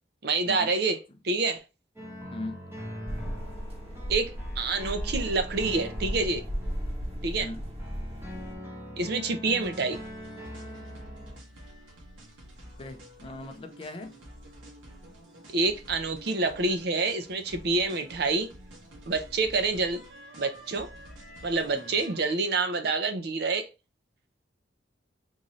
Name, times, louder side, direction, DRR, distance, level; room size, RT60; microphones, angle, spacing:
voice 1, 0.2-1.0 1.2-1.6 4.1-6.4 7.2-7.5 9.0-10.0 15.5-18.5 19.1-20.0 20.4-20.9 21.4-23.7, right 3 dB, 55° right, 0.5 m, -27 dB
sound 1, 2.0-11.4, equal, 10° right, 0.9 m, -42 dB
voice 2, 2.3-2.6 7.4-7.6 12.8-14.2 21.7-22.0, left 2 dB, 30° left, 0.4 m, -39 dB
sound 2, 3.1-8.5, equal, 35° right, 1.0 m, -35 dB
sound 3, 9.6-22.3, equal, 85° right, 1.3 m, -49 dB
3.8 x 2.6 x 3.0 m
head